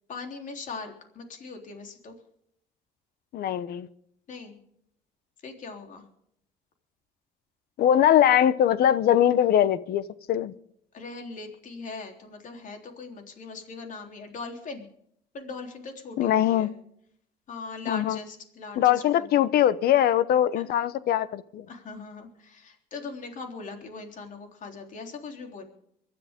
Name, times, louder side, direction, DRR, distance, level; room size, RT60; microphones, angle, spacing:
voice 1, 0.1-2.2 4.3-4.6 5.4-6.1 10.9-14.9 15.3-16.7 17.5-19.5 20.6-20.7 21.7-25.6, left 4 dB, 50° left, 3 dB, 3.6 m, -40 dB
voice 2, 3.3-3.9 7.8-10.5 16.2-16.7 17.9-18.2 18.8-21.7, left 10 dB, 65° left, 16 dB, 0.9 m, -22 dB
24.0 x 13.0 x 3.7 m, 0.71 s
cardioid pair, 110°, 17 cm